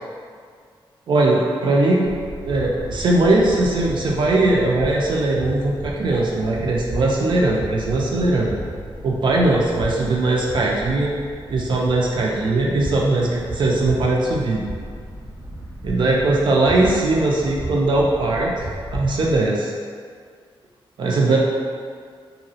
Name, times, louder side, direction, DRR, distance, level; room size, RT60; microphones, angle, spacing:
voice 1, 1.1-2.1 2.4-8.5 9.0-11.1 11.5-14.6 15.8-18.5 18.9-19.7 21.0-21.4, right 2 dB, 60° right, -3 dB, 0.4 m, -19 dB
sound 1, 2.0-19.5, right 1 dB, 85° right, 0.9 m, -34 dB
2.9 x 2.6 x 2.7 m, 2.1 s
wide cardioid pair, 165°, 9 cm